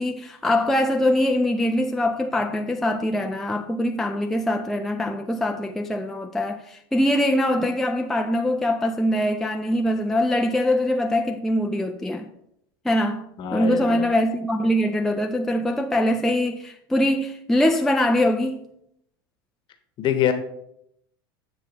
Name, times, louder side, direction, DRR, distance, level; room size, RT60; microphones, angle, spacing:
voice 1, 0.0-12.3 12.8-18.7, left 1 dB, 5° left, 0.4 m, -23 dB
voice 2, 13.4-14.1 20.0-20.3, left 9 dB, 40° left, 1.0 m, -24 dB
8.1 x 6.4 x 2.9 m
hypercardioid pair, 100°, 12 cm